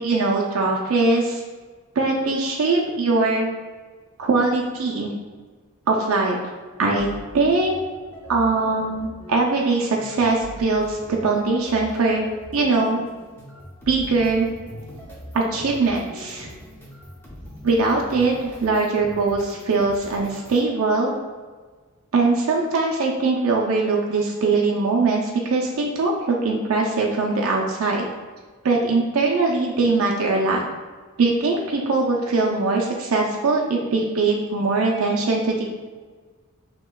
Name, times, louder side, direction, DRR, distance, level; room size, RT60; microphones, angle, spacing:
voice 1, 0.0-1.4 2.0-3.5 4.2-5.1 5.9-6.4 6.8-7.8 8.3-12.2 12.5-13.0 13.9-14.5 15.3-16.5 17.6-21.1 22.1-28.0 28.6-30.6 31.2-35.6, right 3 dB, 85° right, -1 dB, 0.5 m, -21 dB
sound 1, 6.9-20.7, left 1 dB, 10° left, 0.7 m, -42 dB
6.2 x 2.9 x 2.3 m, 1.4 s
head